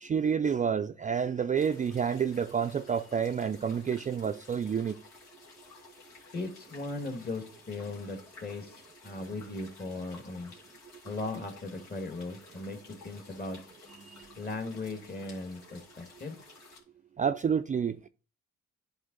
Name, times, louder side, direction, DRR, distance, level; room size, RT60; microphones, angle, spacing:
voice 1, 0.0-5.0 14.0-14.3 17.2-18.1, right 7 dB, 25° right, 0.4 m, -29 dB
sound 1, 1.5-16.8, left 4 dB, 90° left, 2.6 m, -54 dB
voice 2, 6.3-10.5 11.0-13.6 14.4-16.4, left 2 dB, 30° left, 1.8 m, -38 dB
11.0 x 3.8 x 4.0 m
cardioid pair, 90°, 30 cm